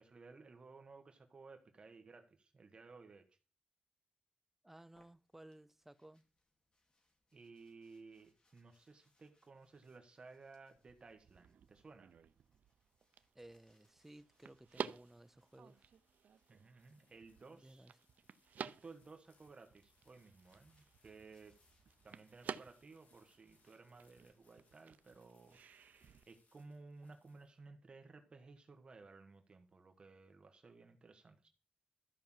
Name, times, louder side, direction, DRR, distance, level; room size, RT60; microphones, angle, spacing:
voice 1, 0.0-3.4 7.3-12.1 16.5-17.9 18.6-21.6 22.0-26.0 26.2-31.5, right 4 dB, 35° right, 1.5 m, -57 dB
voice 2, 4.6-6.3 13.3-15.9 17.5-18.0, right 1 dB, 10° right, 0.6 m, -58 dB
sound 1, 4.8-17.5 18.5-22.1, left 2 dB, 30° left, 2.8 m, -80 dB
sound 2, 10.8-26.2, right 7 dB, 70° right, 0.6 m, -52 dB
sound 3, 14.3-27.9, left 4 dB, 65° left, 3.3 m, -77 dB
13.5 x 5.7 x 7.4 m
wide cardioid pair, 125°, 3 cm